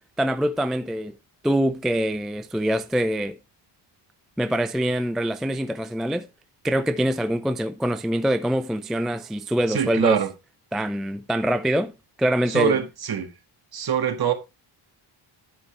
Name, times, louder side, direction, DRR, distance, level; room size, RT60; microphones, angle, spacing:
voice 1, 0.2-1.2 1.4-3.4 4.4-6.3 6.6-10.2 10.7-11.9 12.2-12.8, equal, ahead, 0.4 m, -24 dB
voice 2, 9.7-10.3 12.5-13.3 13.7-14.3, right 8 dB, 45° right, 1.6 m, -24 dB
12.0 x 5.7 x 3.3 m
cardioid pair, 115°, 50 cm